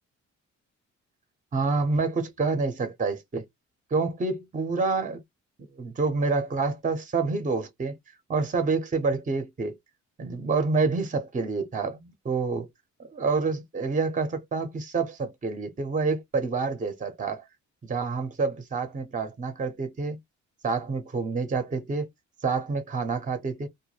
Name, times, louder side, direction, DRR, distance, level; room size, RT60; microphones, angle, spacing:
voice 1, 1.5-3.5 3.9-5.2 5.8-8.0 8.3-9.8 10.2-12.7 13.1-17.4 17.8-20.2 20.6-22.1 22.4-23.7, right 4 dB, 25° right, 0.7 m, -28 dB
2.2 x 2.1 x 3.1 m
cardioid pair, 90°, 30 cm